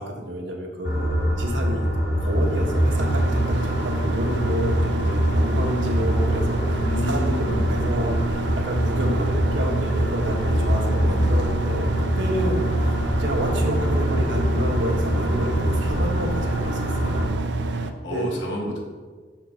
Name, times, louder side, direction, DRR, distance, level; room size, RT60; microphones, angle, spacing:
voice 1, 0.0-1.9 2.2-12.9 13.2-18.3, equal, 90° right, 0 dB, 1.3 m, -30 dB
sound 1, 0.8-17.3, equal, 60° left, 1.3 m, -24 dB
sound 2, 2.2-17.9, right 3 dB, 70° right, 0.5 m, -29 dB
voice 2, 6.8-7.7 18.0-18.8, equal, 80° left, -2 dB, 1.5 m, -30 dB
6.0 x 4.4 x 5.5 m, 1.5 s
head